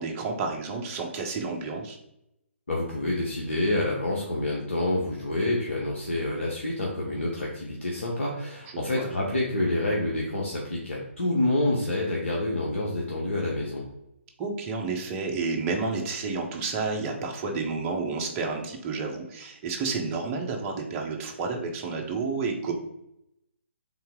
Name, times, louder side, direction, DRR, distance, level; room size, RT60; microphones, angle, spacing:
voice 1, 0.0-2.0 8.7-9.1 14.4-22.7, right 4 dB, 20° right, 1 dB, 0.7 m, -30 dB
voice 2, 2.7-13.8, left 1 dB, 70° left, -3 dB, 0.9 m, -28 dB
3.6 x 2.8 x 3.6 m, 0.81 s
figure-of-eight pair, 135°, 7 cm